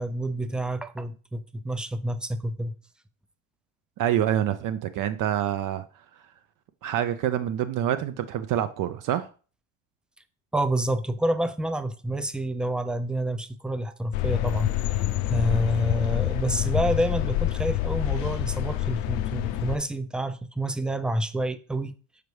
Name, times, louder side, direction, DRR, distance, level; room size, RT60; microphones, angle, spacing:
voice 1, 0.0-2.7 10.5-14.7 15.3-21.9, right 1 dB, ahead, 0.4 m, -28 dB
voice 2, 4.0-5.8 6.8-9.3, right 11 dB, 55° right, 0.6 m, -26 dB
sound 1, 14.1-19.8, left 15 dB, 80° left, 0.6 m, -27 dB
6.7 x 4.7 x 3.2 m
supercardioid pair, 95°, 38 cm